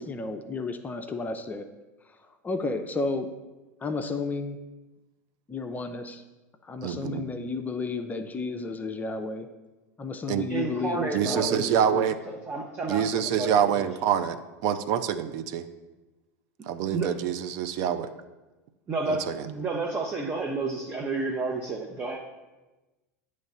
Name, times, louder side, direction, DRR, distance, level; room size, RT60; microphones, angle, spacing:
voice 1, 0.0-1.6 2.4-3.3 3.8-4.6 5.5-6.2 6.6-9.5 10.0-12.1, left 3 dB, 20° left, 6 dB, 0.5 m, -32 dB
voice 2, 6.8-7.3 10.3-10.4 11.1-12.2 12.9-14.4 14.6-15.6 16.7-18.1 19.1-19.5, right 8 dB, 50° right, 10 dB, 0.5 m, -26 dB
voice 3, 10.5-11.8 12.5-13.7 16.9-17.1 18.9-22.2, right 3 dB, 25° right, 1 dB, 0.8 m, -31 dB
8.9 x 3.2 x 5.5 m, 1.1 s
hypercardioid pair, 85°, 9 cm